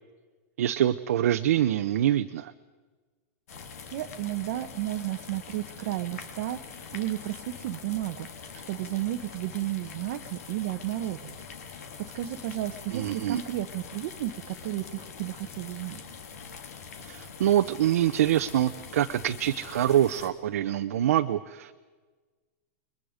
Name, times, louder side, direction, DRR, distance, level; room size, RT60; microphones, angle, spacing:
voice 1, 0.6-2.5 12.9-13.4 17.0-21.7, right 11 dB, 70° right, 7 dB, 0.8 m, -25 dB
sound 1, 3.5-20.3, left 6 dB, 75° left, 3.3 m, -44 dB
voice 2, 3.9-6.6 6.9-8.3 8.7-11.4 11.7-16.0, right 14 dB, 40° right, 5 dB, 1.0 m, -33 dB
30.0 x 22.5 x 5.1 m, 1.4 s
supercardioid pair, 175°, 8 cm